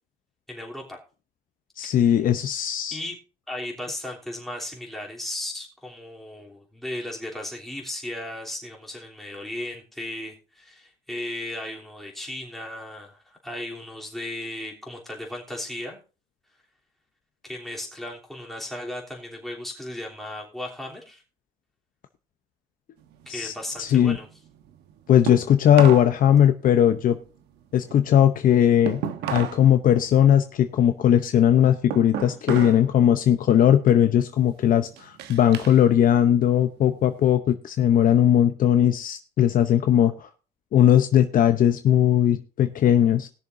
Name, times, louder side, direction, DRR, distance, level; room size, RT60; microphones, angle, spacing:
voice 1, 0.5-1.0 2.0-2.2 2.9-3.2 3.5-16.0 17.4-21.2 23.3-24.3, left 1 dB, ahead, -3 dB, 3.2 m, -36 dB
voice 2, 1.8-3.0 23.3-23.5 23.8-24.2 25.1-27.2 27.7-29.0 29.3-40.3 40.7-43.3, left 10 dB, 55° left, 9 dB, 0.8 m, -19 dB
sound 1, 23.0-26.1 26.5-29.7 30.0-32.9 33.2-33.6 34.2-35.8 36.2-37.3, right 9 dB, 85° right, 1.0 m, -35 dB
20.5 x 6.8 x 2.6 m, 0.34 s
cardioid pair, 110°, 17 cm